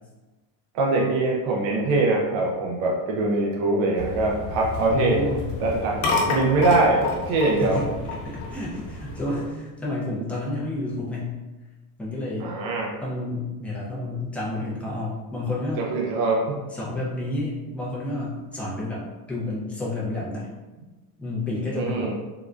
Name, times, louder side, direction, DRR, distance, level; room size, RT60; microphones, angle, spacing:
voice 1, 0.7-5.2 5.6-6.0 6.3-7.8 9.3-9.4 12.4-12.9 15.8-16.6 21.7-22.1, right 2 dB, 55° right, -1 dB, 0.5 m, -23 dB
sound 1, 4.0-9.5, left 3 dB, 80° left, 0.9 m, -31 dB
sound 2, 4.0-9.2, left 1 dB, 80° right, 1.0 m, -37 dB
voice 2, 4.8-5.5 7.6-7.9 8.2-11.3 12.0-12.5 13.0-15.8 16.7-20.5 21.2-22.1, left 2 dB, 5° left, -7 dB, 0.4 m, -30 dB
3.7 x 2.1 x 2.3 m, 1.2 s
cardioid pair, 150°, 43 cm